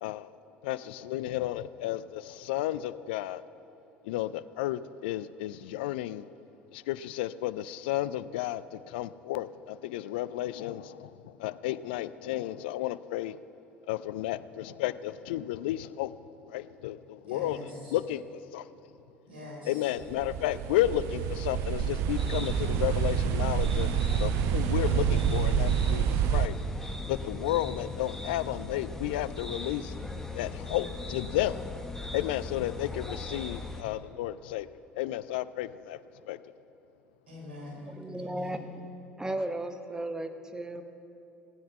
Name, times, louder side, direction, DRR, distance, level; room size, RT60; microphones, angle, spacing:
voice 1, 0.6-3.4 4.1-6.3 6.7-13.4 13.9-16.1 16.5-17.6 17.9-18.7 19.7-23.9 24.2-26.5 26.8-29.9 30.3-31.6 32.1-34.7 35.0-36.0 36.3-36.4, left 14 dB, 65° left, 15 dB, 0.4 m, -32 dB
voice 2, 17.2-17.9 19.3-19.9 37.3-38.7, left 2 dB, 70° right, -3 dB, 3.8 m, -44 dB
sound 1, 20.0-26.5, right 8 dB, 55° right, 0.6 m, -27 dB
sound 2, 22.1-33.8, left 3 dB, 5° left, 1.2 m, -39 dB
voice 3, 37.9-38.8 39.2-40.8, right 1 dB, 10° right, 8 dB, 0.9 m, -35 dB
17.0 x 7.9 x 7.3 m, 2.9 s
figure-of-eight pair, 60°, 6 cm